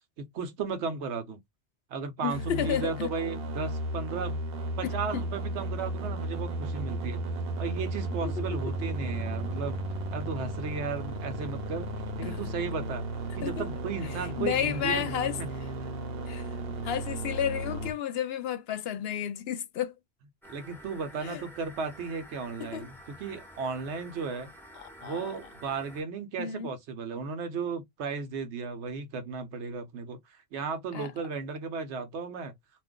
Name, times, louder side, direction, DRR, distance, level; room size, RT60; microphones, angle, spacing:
voice 1, 0.2-1.4 1.9-4.4 4.8-7.2 7.6-9.8 10.1-11.9 12.2-13.1 13.3-15.1 15.4-15.5 20.5-22.9 23.2-24.5 25.0-32.5, right 5 dB, 85° right, 1.0 m, -35 dB
voice 2, 2.2-3.1 4.8-5.2 8.2-8.6 12.2-12.4 13.4-13.7 14.0-15.4 16.3-16.5 16.8-19.9 21.2-21.4 22.6-22.9 24.8-25.3 26.4-26.7 30.9-31.1, left 9 dB, 70° left, 0.8 m, -32 dB
sound 1, 2.3-17.9, right 1 dB, 65° right, 0.9 m, -34 dB
sound 2, 20.4-26.0, equal, 5° left, 0.6 m, -50 dB
2.5 x 2.2 x 3.6 m
omnidirectional pair, 1.2 m